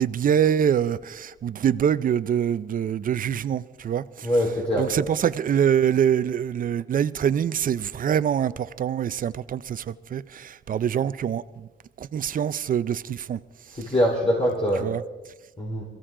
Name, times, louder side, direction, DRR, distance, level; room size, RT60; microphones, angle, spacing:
voice 1, 0.0-4.3 4.8-11.7 12.0-13.4 14.8-15.0, right 9 dB, 45° right, 0.6 m, -24 dB
voice 2, 4.2-4.9 13.7-14.9 15.6-15.8, equal, 25° left, 3.9 m, -23 dB
22.5 x 15.5 x 3.8 m
cardioid pair, 90°, 20 cm